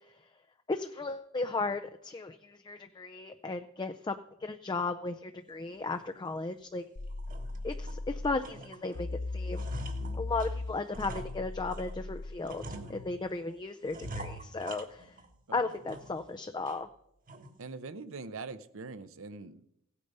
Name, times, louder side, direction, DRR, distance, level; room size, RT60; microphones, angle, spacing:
voice 1, 0.7-6.8 7.6-9.1 9.3-9.7 10.1-15.2 15.5-16.9, left 3 dB, 20° left, 8 dB, 0.4 m, -35 dB
sound 1, 5.9-6.1 6.6-6.7 7.1-8.0 8.4-9.0 9.3-11.9 12.4-13.4 13.9-15.3 15.7-16.3 16.7-16.8 17.3-17.6, right 1 dB, 40° right, 1.3 m, -45 dB
sound 2, 7.0-8.4 8.9-12.4, left 2 dB, 85° left, 0.8 m, -37 dB
voice 2, 17.6-19.7, right 4 dB, 65° right, 11 dB, 0.8 m, -43 dB
16.0 x 8.4 x 5.5 m, 0.77 s
head